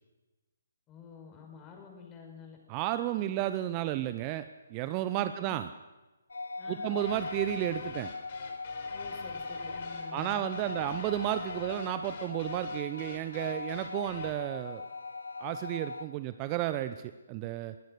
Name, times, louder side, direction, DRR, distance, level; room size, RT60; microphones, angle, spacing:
voice 1, 0.9-2.6 5.4-5.6 6.6-7.0 8.9-11.0, left 6 dB, 20° left, 2 dB, 5.1 m, -50 dB
voice 2, 2.7-5.7 6.7-8.1 10.1-14.9 15.4-17.7, right 13 dB, 25° right, 12 dB, 0.7 m, -32 dB
sound 1, 6.3-16.1, left 3 dB, 70° left, 1.0 m, -40 dB
sound 2, 7.0-14.4, left 5 dB, 40° left, 4.0 m, -48 dB
22.0 x 18.5 x 6.5 m, 1.1 s
figure-of-eight pair, 135°, 0 cm